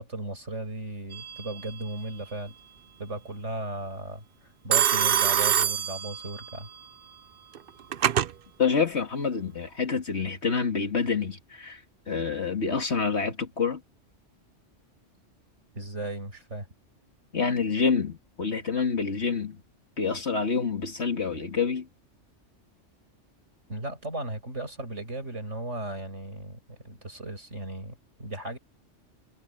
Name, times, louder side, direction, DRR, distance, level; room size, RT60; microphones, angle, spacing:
voice 1, 0.0-2.5 3.0-4.2 4.6-6.7 15.7-16.7 23.7-28.6, right 2 dB, 70° right, 7.1 m, -36 dB
Telephone, 1.1-1.6 4.7-6.6 7.5-8.3, right 9 dB, 55° right, 0.8 m, -25 dB
voice 2, 8.6-11.8 12.1-13.8 17.3-19.6 20.0-21.9, left 5 dB, 60° left, 2.4 m, -27 dB
omnidirectional pair, 1.3 m